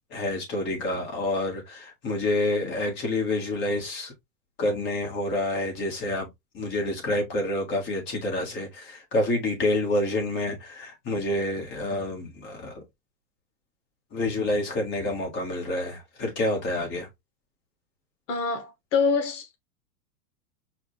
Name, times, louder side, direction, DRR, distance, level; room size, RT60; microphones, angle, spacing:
voice 1, 0.1-4.1 4.6-6.3 6.5-12.8 14.1-17.1, left 1 dB, 25° left, 1.6 m, -28 dB
voice 2, 18.3-19.6, left 5 dB, 45° left, 1.5 m, -25 dB
5.0 x 2.5 x 3.3 m
supercardioid pair, 160°, 49 cm